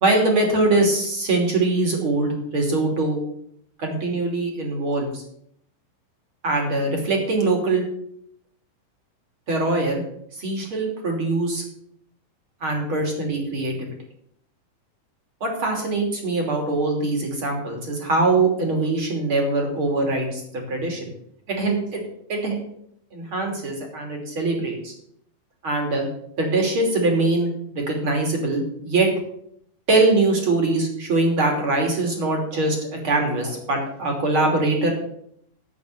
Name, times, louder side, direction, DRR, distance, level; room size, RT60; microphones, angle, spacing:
voice 1, 0.0-3.2 3.8-5.2 6.4-7.8 9.5-10.0 10.4-11.6 12.6-13.9 15.4-21.1 21.5-22.0 22.3-22.6 23.1-24.9 25.6-26.1 26.4-29.1 29.9-34.9, right 2 dB, 40° right, 2 dB, 3.5 m, -22 dB
9.5 x 8.5 x 7.7 m, 0.70 s
omnidirectional pair, 3.9 m